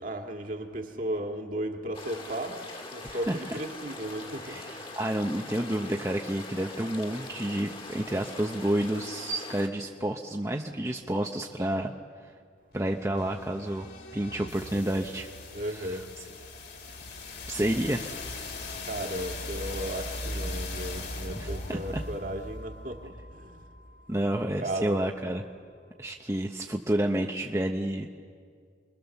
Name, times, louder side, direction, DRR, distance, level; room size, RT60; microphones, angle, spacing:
voice 1, 0.0-2.6 2.9-4.6 15.5-16.0 18.9-23.6 24.2-25.0, right 1 dB, 45° right, 3 dB, 1.9 m, -35 dB
sound 1, 1.9-9.7, left 2 dB, 30° left, 2.0 m, -42 dB
voice 2, 3.0-3.6 4.4-11.9 12.2-12.3 12.7-15.3 15.7-16.0 17.5-18.2 21.4-22.0 24.1-25.4 26.0-28.1, right 1 dB, 15° right, 1 dB, 0.8 m, -30 dB
sound 2, 12.7-24.6, left 2 dB, 55° left, 2.8 m, -39 dB
28.5 x 22.5 x 7.1 m, 2.1 s
head